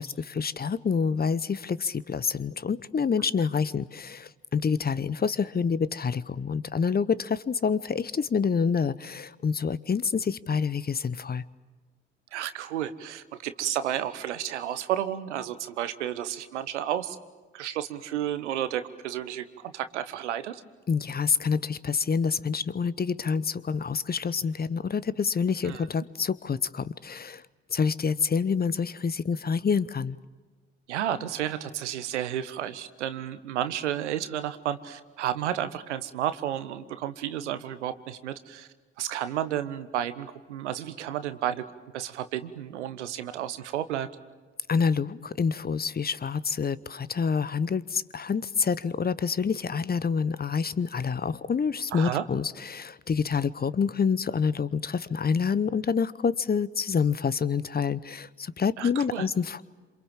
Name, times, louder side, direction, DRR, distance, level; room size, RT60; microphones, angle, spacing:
voice 1, 0.0-11.4 20.9-27.4 27.7-30.2 44.7-59.6, left 6 dB, 25° left, 19 dB, 0.9 m, -27 dB
voice 2, 12.3-17.2 17.5-20.6 25.6-25.8 30.9-38.7 39.0-41.6 41.9-44.1 51.9-52.2 58.8-59.3, right 11 dB, 80° right, 12 dB, 1.1 m, -32 dB
27.5 x 26.5 x 7.4 m, 1.3 s
figure-of-eight pair, 45°, 34 cm